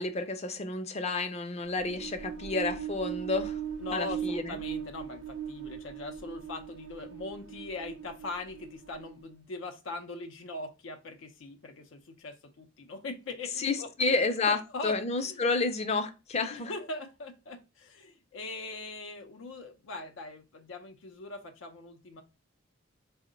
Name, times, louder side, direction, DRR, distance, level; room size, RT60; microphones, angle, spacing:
voice 1, 0.0-3.6 3.9-4.6 13.6-16.7, left 3 dB, 35° left, 0.4 m, -30 dB
sound 1, 1.6-9.3, right 8 dB, 75° right, 0.5 m, -39 dB
voice 2, 3.8-14.1 14.5-15.4 16.5-22.2, left 2 dB, 90° left, 0.5 m, -41 dB
3.6 x 2.1 x 3.7 m
head